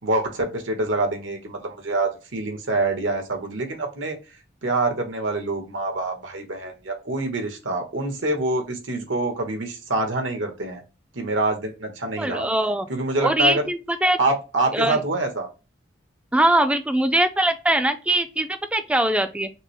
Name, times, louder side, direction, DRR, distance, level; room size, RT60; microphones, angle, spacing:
voice 1, 0.0-4.2 4.6-10.8 11.1-12.5 12.9-13.6 14.2-15.5, right 2 dB, 85° right, 5 dB, 1.2 m, -26 dB
voice 2, 12.2-12.9 13.2-14.2 14.7-15.0 16.3-19.5, right 1 dB, 5° right, 9 dB, 0.4 m, -21 dB
5.9 x 2.1 x 3.0 m, 0.31 s
head